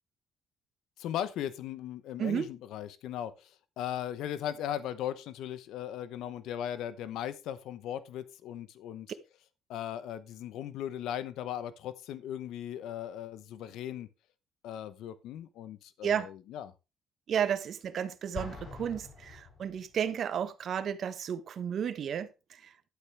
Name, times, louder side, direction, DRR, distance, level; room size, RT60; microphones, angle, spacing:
voice 1, 1.0-9.1 9.7-14.1 14.6-16.7, left 10 dB, 85° left, 0.9 m, -38 dB
voice 2, 2.2-2.5 16.0-16.3 17.3-22.9, right 8 dB, 60° right, 1.3 m, -33 dB
Explosion, 18.3-20.2, left 4 dB, 50° left, 6.2 m, -44 dB
11.5 x 8.5 x 3.4 m
cardioid pair, 90°, 0 cm